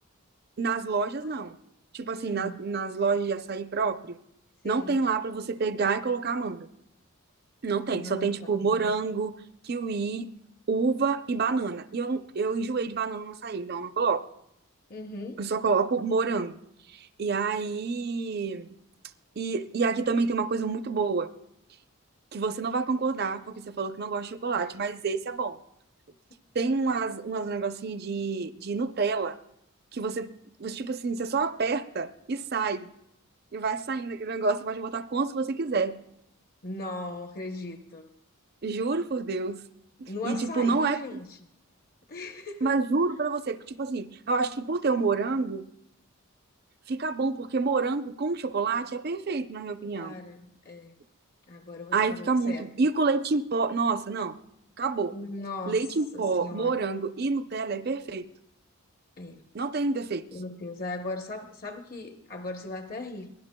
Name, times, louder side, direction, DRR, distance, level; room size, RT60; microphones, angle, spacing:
voice 1, 0.6-1.5 1.9-4.2 4.6-6.7 7.6-9.4 9.6-10.3 10.7-14.2 15.4-16.6 16.9-18.7 19.4-21.3 22.3-25.6 26.5-29.4 29.9-30.3 30.6-32.9 33.5-35.9 38.6-39.6 40.0-41.2 42.6-45.7 46.9-50.2 51.9-54.3 54.8-55.1 55.7-58.3 59.5-60.2, right 4 dB, 45° right, 0.5 m, -28 dB
voice 2, 2.1-2.6 4.6-5.0 7.9-8.5 14.9-15.4 36.6-38.1 40.1-41.4 42.1-42.7 49.9-50.9 51.5-52.7 55.1-55.9 56.1-56.9 59.2-59.4 60.3-63.3, left 2 dB, 40° left, 0.8 m, -38 dB
23.0 x 17.5 x 2.2 m
head